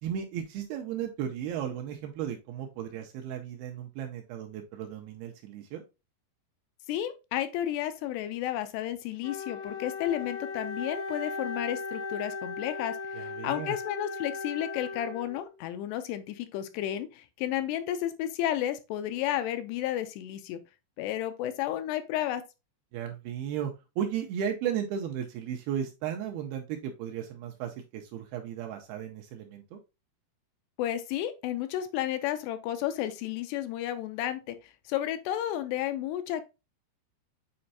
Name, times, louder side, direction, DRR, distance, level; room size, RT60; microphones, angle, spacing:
voice 1, 0.0-5.8 13.1-13.8 22.9-29.8, right 9 dB, 80° right, 2.3 m, -35 dB
voice 2, 6.9-20.6 21.0-22.4 30.8-34.6 34.9-36.4, left 12 dB, 80° left, 2.6 m, -32 dB
Wind instrument woodwind instrument, 9.2-15.6, left 4 dB, 60° left, 1.4 m, -37 dB
8.6 x 4.3 x 2.7 m
omnidirectional pair, 5.0 m